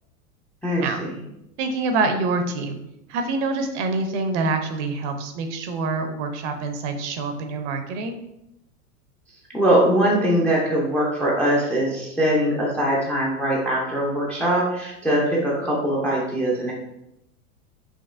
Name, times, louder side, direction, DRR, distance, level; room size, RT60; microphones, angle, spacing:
voice 1, 0.6-1.2 9.5-16.7, right 1 dB, 5° left, -4 dB, 0.4 m, -22 dB
voice 2, 1.6-2.8 3.1-8.2, right 3 dB, 50° right, 6 dB, 0.7 m, -26 dB
5.2 x 2.9 x 2.4 m, 0.84 s
hypercardioid pair, 115°, 45 cm